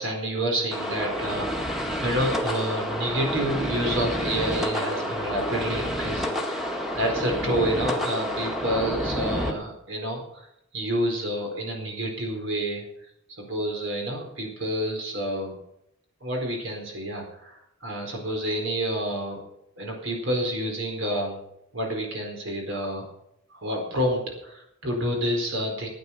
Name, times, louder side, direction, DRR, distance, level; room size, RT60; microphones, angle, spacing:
voice 1, 0.0-6.7 7.0-10.5 10.7-12.9 13.4-15.6 16.2-19.4 19.8-21.4 21.7-23.0 23.5-25.9, equal, 60° right, 1 dB, 4.4 m, -29 dB
sound 1, 0.7-9.5, equal, ahead, 1.8 m, -29 dB
16.0 x 9.8 x 5.9 m, 0.77 s
head